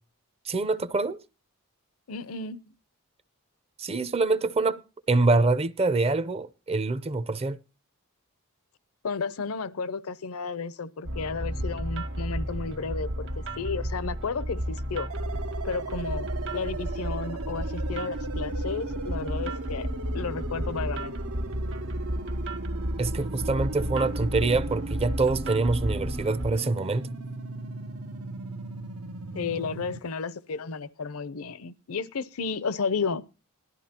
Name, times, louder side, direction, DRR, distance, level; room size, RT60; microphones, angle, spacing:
voice 1, 0.5-1.2 3.8-4.8 5.1-7.6 23.0-27.1, right 3 dB, 25° right, 0.6 m, -25 dB
voice 2, 2.1-2.7 9.0-15.1 15.6-21.2 29.3-33.2, left 4 dB, 70° left, 0.6 m, -33 dB
sound 1, 11.1-26.5, equal, 60° right, 1.4 m, -33 dB
sound 2, 15.1-30.0, right 3 dB, 80° right, 0.9 m, -38 dB
18.5 x 12.5 x 2.8 m
head